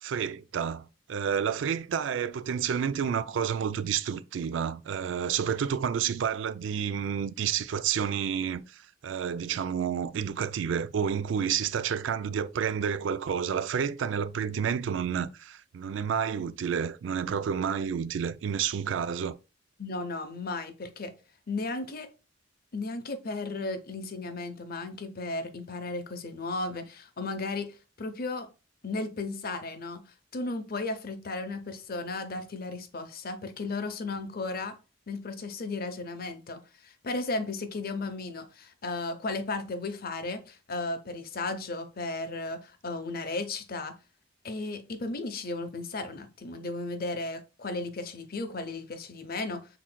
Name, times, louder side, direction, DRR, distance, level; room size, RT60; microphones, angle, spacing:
voice 1, 0.0-19.4, right 7 dB, 70° right, 0.3 m, -30 dB
voice 2, 19.8-21.1 21.5-22.1 22.7-28.5 28.8-30.0 30.3-34.7 35.1-44.0 44.4-49.7, left 3 dB, 50° left, 0.7 m, -35 dB
5.9 x 3.6 x 2.2 m
head